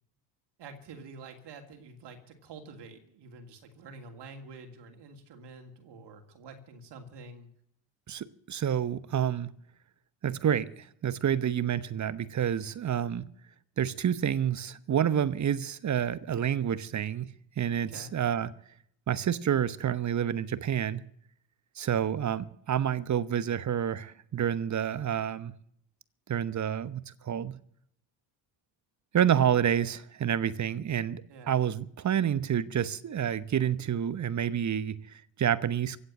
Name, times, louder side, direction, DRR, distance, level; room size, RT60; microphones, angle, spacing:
voice 1, 0.6-7.5 17.9-18.1 31.3-31.6, right 3 dB, 55° right, 2.7 m, -48 dB
voice 2, 8.1-9.5 10.2-13.3 13.8-18.5 19.1-21.0 21.8-25.5 26.3-27.6 29.1-36.0, right 9 dB, 35° right, 1.1 m, -29 dB
16.5 x 7.9 x 8.8 m
supercardioid pair, 75°, 49 cm